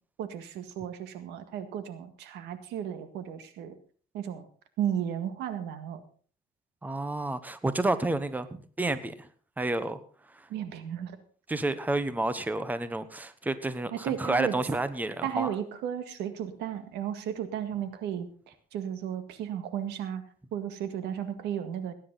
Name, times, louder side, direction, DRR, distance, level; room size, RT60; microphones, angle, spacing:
voice 1, 0.2-3.7 4.1-4.5 4.8-6.0 10.5-11.2 13.9-14.5 15.2-20.2 20.5-21.9, right 9 dB, 85° right, 10 dB, 1.9 m, -34 dB
voice 2, 6.8-8.5 8.8-9.3 9.6-10.0 10.3-10.5 11.5-15.5, right 2 dB, 10° right, 12 dB, 1.1 m, -30 dB
19.0 x 10.0 x 4.1 m, 0.43 s
cardioid pair, 110°, 17 cm